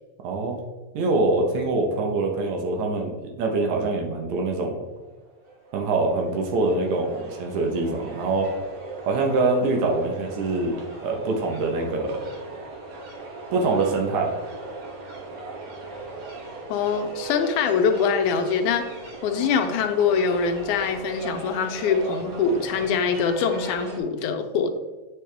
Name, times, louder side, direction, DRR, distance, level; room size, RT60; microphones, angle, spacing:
voice 1, 0.2-0.6 0.9-4.8 5.7-8.5 9.0-10.8 11.0-12.3 13.5-14.3, right 3 dB, 75° right, 2 dB, 2.3 m, -24 dB
sound 1, 4.9-24.0, right 3 dB, 55° right, 2.0 m, -38 dB
voice 2, 16.7-18.9 19.2-24.8, left 6 dB, 90° left, 6 dB, 2.2 m, -23 dB
8.5 x 5.0 x 3.4 m, 1.2 s
omnidirectional pair, 3.4 m